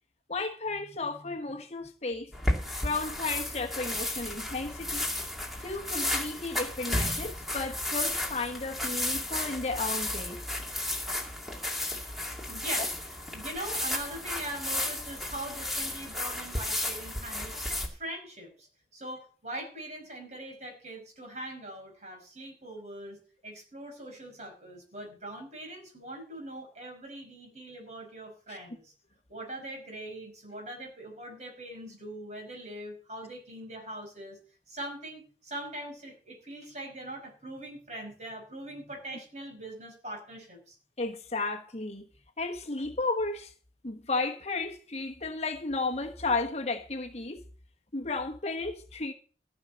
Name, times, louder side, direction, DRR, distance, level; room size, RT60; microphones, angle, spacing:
voice 1, 0.3-2.3 2.8-5.1 5.6-10.4 41.0-42.0 42.4-43.5 43.8-47.4 47.9-49.1, left 3 dB, 35° left, 1.2 m, -33 dB
sound 1, 2.3-17.9, left 1 dB, ahead, 2.3 m, -33 dB
voice 2, 12.5-13.0 13.3-17.6 17.9-18.7 18.9-28.9 29.3-34.4 34.7-40.8, right 1 dB, 40° right, 5.3 m, -42 dB
14.5 x 6.3 x 6.9 m
head